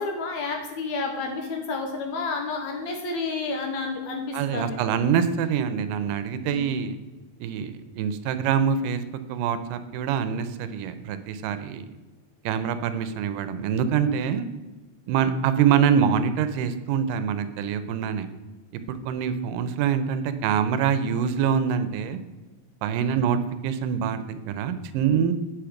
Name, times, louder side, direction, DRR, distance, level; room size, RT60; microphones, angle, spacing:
voice 1, 0.0-4.8 6.4-6.7 23.0-23.2, left 4 dB, 70° left, 2 dB, 2.0 m, -30 dB
voice 2, 4.3-7.0 7.4-11.9 12.4-14.5 15.1-18.3 18.9-22.2 22.8-25.3, right 7 dB, 85° right, 11 dB, 2.3 m, -25 dB
8.3 x 5.8 x 5.0 m, 1.1 s
omnidirectional pair, 3.8 m